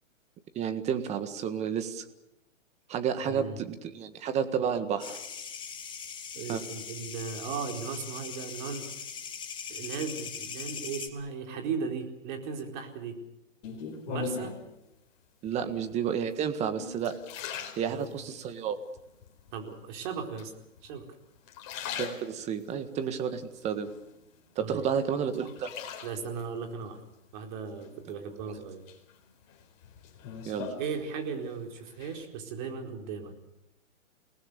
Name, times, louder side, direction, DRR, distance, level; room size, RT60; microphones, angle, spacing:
voice 1, 0.5-2.0 2.9-5.2 6.5-6.6 15.4-17.2 17.8-18.8 22.0-23.9 24.5-25.7 30.4-30.7, right 7 dB, 15° right, 10 dB, 1.6 m, -31 dB
voice 2, 3.2-3.6 6.3-8.8 9.7-13.2 14.1-14.5 15.6-15.7 17.9-18.1 19.5-20.5 20.8-21.1 24.6-24.9 26.0-27.0 27.3-28.8 30.8-33.3, right 6 dB, 35° right, 3 dB, 4.6 m, -37 dB
sound 1, 5.0-11.1, left 7 dB, 10° left, 2.0 m, -40 dB
sound 2, 13.6-14.7 15.5-16.0 16.5-18.5 19.0-19.6 20.4-21.1 21.4-22.7 23.2-24.4 24.8-26.5 27.8-28.4 28.9-31.5 31.7-32.2, left 6 dB, 35° left, 4.5 m, -40 dB
29.0 x 19.0 x 6.9 m, 0.89 s
hypercardioid pair, 145°, 39 cm